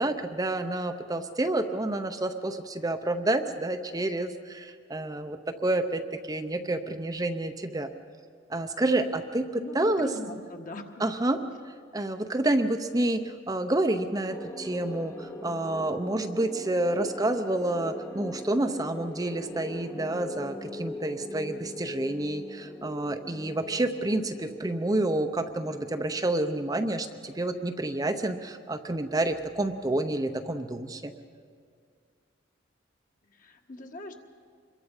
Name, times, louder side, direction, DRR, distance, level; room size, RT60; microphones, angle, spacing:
voice 1, 0.0-7.9 8.5-10.1 11.0-11.4 11.9-31.1, right 2 dB, 20° right, 7 dB, 0.7 m, -29 dB
voice 2, 9.6-10.9 33.3-34.2, left 2 dB, 45° left, 4 dB, 1.6 m, -40 dB
sound 1, 14.3-27.1, left 1 dB, 15° left, 0.9 m, -41 dB
26.0 x 22.5 x 5.5 m, 2.1 s
head